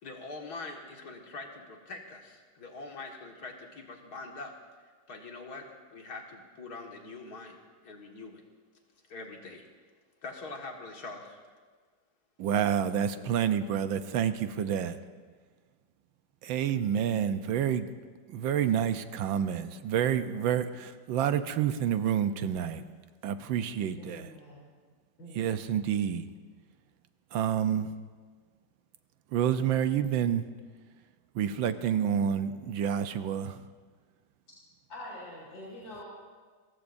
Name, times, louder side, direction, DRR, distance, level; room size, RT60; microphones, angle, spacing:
voice 1, 0.0-4.5 5.1-5.7 5.9-7.6 7.8-8.4 9.1-9.7 10.2-11.4, left 3 dB, 55° left, 1 dB, 2.3 m, -43 dB
voice 2, 12.4-15.0 16.4-17.9 18.3-22.8 23.2-24.3 25.3-26.3 27.3-27.9 29.3-30.5 31.3-33.6, right 9 dB, 85° right, 10 dB, 1.5 m, -28 dB
voice 3, 24.0-24.6 25.2-25.4 25.7-25.8 31.4-31.6 34.9-36.0, left 1 dB, 75° left, -7 dB, 4.3 m, -45 dB
29.0 x 15.5 x 2.6 m, 1.5 s
omnidirectional pair, 2.1 m